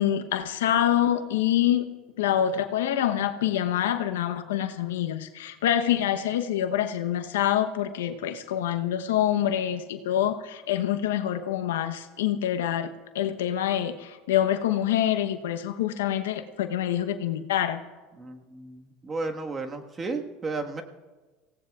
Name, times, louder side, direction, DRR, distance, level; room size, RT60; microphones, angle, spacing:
voice 1, 0.0-1.9 2.2-12.9 13.1-17.8, left 11 dB, 85° left, 7 dB, 0.9 m, -26 dB
voice 2, 18.1-20.8, right 3 dB, 25° right, 4 dB, 1.6 m, -33 dB
25.0 x 17.0 x 2.4 m, 1.3 s
hypercardioid pair, 90°, 0 cm